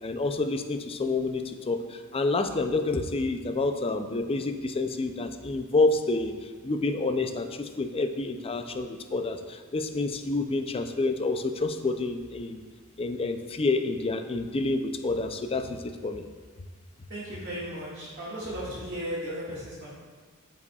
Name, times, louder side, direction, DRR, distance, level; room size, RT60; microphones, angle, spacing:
voice 1, 0.0-12.6 13.0-16.2, left 3 dB, 25° left, 8 dB, 0.4 m, -28 dB
voice 2, 17.1-19.9, equal, 50° right, -10 dB, 2.0 m, -35 dB
13.5 x 4.8 x 2.4 m, 1.5 s
head